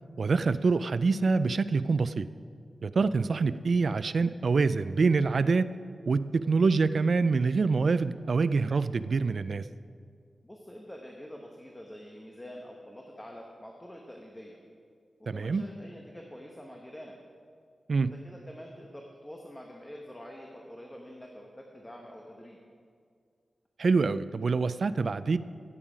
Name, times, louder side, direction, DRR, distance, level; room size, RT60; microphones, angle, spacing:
voice 1, 0.2-2.3 2.8-5.7 6.1-9.6 15.3-15.6 17.9-18.1 23.8-25.4, right 4 dB, 50° right, 14 dB, 0.3 m, -25 dB
voice 2, 10.4-14.6 15.3-17.2 18.0-22.6, equal, 10° left, 0 dB, 0.9 m, -46 dB
16.5 x 7.3 x 5.0 m, 2.2 s
wide cardioid pair, 170°, 0 cm